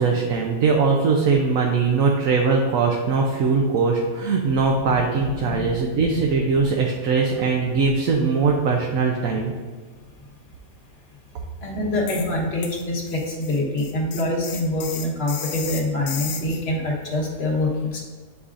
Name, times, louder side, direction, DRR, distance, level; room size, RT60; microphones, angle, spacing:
voice 1, 0.0-9.5, right 4 dB, 70° right, 0 dB, 1.0 m, -21 dB
voice 2, 5.2-6.0 11.6-18.0, left 1 dB, 45° left, -2 dB, 1.4 m, -25 dB
sound 1, 12.1-12.3 12.6-16.6, left 7 dB, 85° left, 1.2 m, -34 dB
8.1 x 4.7 x 2.5 m, 1.4 s
omnidirectional pair, 1.5 m